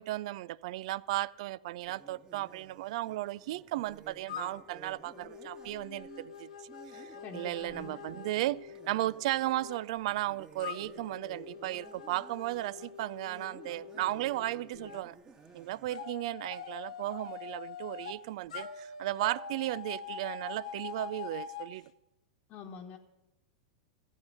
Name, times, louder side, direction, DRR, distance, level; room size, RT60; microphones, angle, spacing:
voice 1, 0.0-15.2 15.5-21.9, right 16 dB, 65° right, 21 dB, 0.4 m, -35 dB
sound 1, 1.8-16.0, right 4 dB, 20° right, 1.5 m, -54 dB
sound 2, 4.3-9.8 10.6-15.0 15.9-18.2 18.5-21.7, left 7 dB, 80° left, 1.1 m, -45 dB
voice 2, 7.2-8.0 22.5-23.0, left 6 dB, 45° left, 1 dB, 1.2 m, -46 dB
14.5 x 8.3 x 5.5 m, 0.93 s
hypercardioid pair, 105°, 4 cm